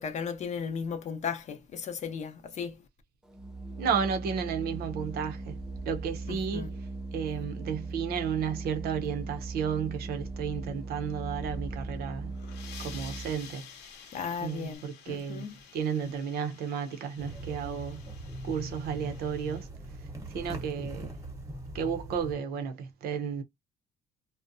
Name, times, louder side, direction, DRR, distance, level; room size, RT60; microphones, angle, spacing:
voice 1, 0.0-2.8 6.3-6.7 14.1-15.5, left 6 dB, 45° left, 0.6 m, -36 dB
Organ, 3.3-13.6, right 3 dB, 5° right, 0.4 m, -39 dB
voice 2, 3.8-5.6 5.8-6.8 7.1-12.3 12.8-13.7 14.4-15.5 15.7-18.0 18.4-19.7 20.3-21.1 21.7-23.4, right 7 dB, 65° right, 0.6 m, -32 dB
sound 1, 12.2-19.6, left 8 dB, 80° left, 0.7 m, -51 dB
sound 2, 17.2-22.3, right 1 dB, 20° right, 0.9 m, -41 dB
2.6 x 2.1 x 2.5 m
cardioid pair, 110°, 17 cm